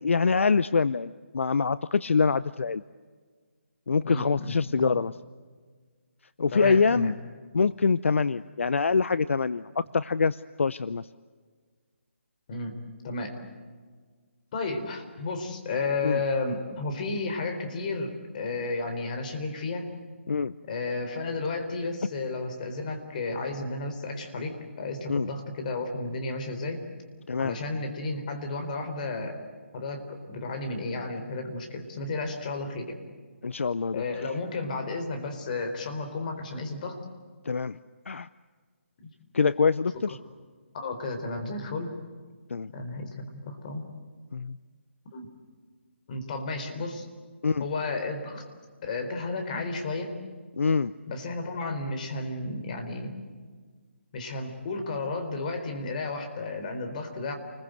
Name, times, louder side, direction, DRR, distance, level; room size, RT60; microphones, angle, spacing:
voice 1, 0.0-2.8 3.9-5.1 6.4-7.1 7.5-11.1 16.0-16.2 20.3-20.5 25.1-25.3 27.3-27.6 33.4-34.0 37.4-37.8 38.1-38.3 39.3-40.2 42.5-42.7 44.3-44.6 47.4-47.6 50.6-50.9, left 5 dB, 70° left, 17 dB, 0.6 m, -25 dB
voice 2, 4.0-5.0 6.5-7.1 12.5-12.7 13.0-13.3 14.5-19.9 20.7-26.9 27.4-29.4 29.7-33.0 33.9-37.0 39.0-39.1 40.7-42.0 42.7-43.9 45.1-45.3 46.1-47.1 47.6-48.4 48.8-50.2 51.1-53.1 54.1-57.4, left 3 dB, 35° left, 5 dB, 4.2 m, -33 dB
29.0 x 21.5 x 7.9 m, 1.5 s
figure-of-eight pair, 155°, 7 cm